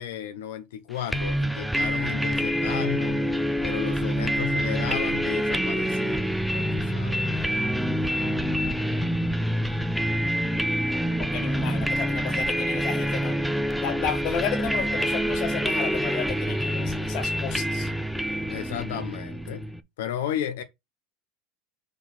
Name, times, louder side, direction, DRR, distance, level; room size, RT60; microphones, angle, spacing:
voice 1, 0.0-3.2 3.6-7.2 18.5-19.7 20.0-20.6, left 10 dB, 85° left, 1.0 m, -34 dB
sound 1, 1.1-19.8, equal, ahead, 0.4 m, -26 dB
voice 2, 11.1-13.4 13.8-17.9, left 8 dB, 40° left, 1.8 m, -33 dB
5.9 x 3.7 x 6.0 m
supercardioid pair, 170°, 0 cm